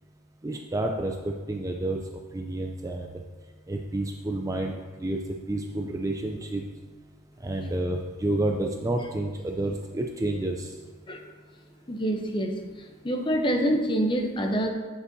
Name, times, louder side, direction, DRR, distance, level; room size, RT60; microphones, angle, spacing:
voice 1, 0.4-2.0 2.3-3.2 3.7-4.7 5.0-5.2 5.5-6.6 7.4-10.8, right 1 dB, 15° right, 2 dB, 0.3 m, -29 dB
voice 2, 11.9-12.5 13.0-14.7, equal, 20° left, 3 dB, 0.6 m, -26 dB
9.7 x 6.7 x 2.7 m, 1.4 s
head